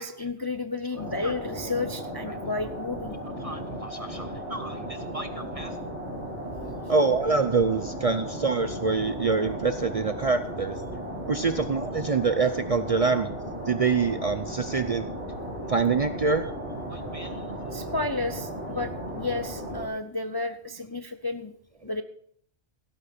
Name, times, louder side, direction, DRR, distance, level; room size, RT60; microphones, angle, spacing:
voice 1, 0.0-3.2 17.7-21.5 21.8-22.0, left 3 dB, 30° left, 9 dB, 0.4 m, -32 dB
sound 1, 0.9-19.9, right 1 dB, 85° left, 3.6 m, -36 dB
voice 2, 3.4-5.7 6.9-10.8 11.3-13.3 13.7-15.1 15.7-16.5 16.9-17.3, right 4 dB, 45° right, 10 dB, 0.5 m, -26 dB
16.0 x 8.9 x 4.3 m, 0.63 s
omnidirectional pair, 1.2 m